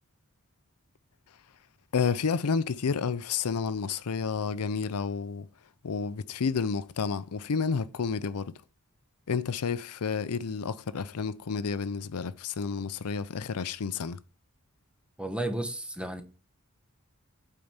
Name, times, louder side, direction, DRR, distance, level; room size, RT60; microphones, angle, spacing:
voice 1, 1.9-5.5 5.8-8.5 9.3-14.2, left 5 dB, 85° left, 0.5 m, -30 dB
voice 2, 15.2-16.2, right 1 dB, 5° right, 1.0 m, -33 dB
8.6 x 4.6 x 5.6 m
head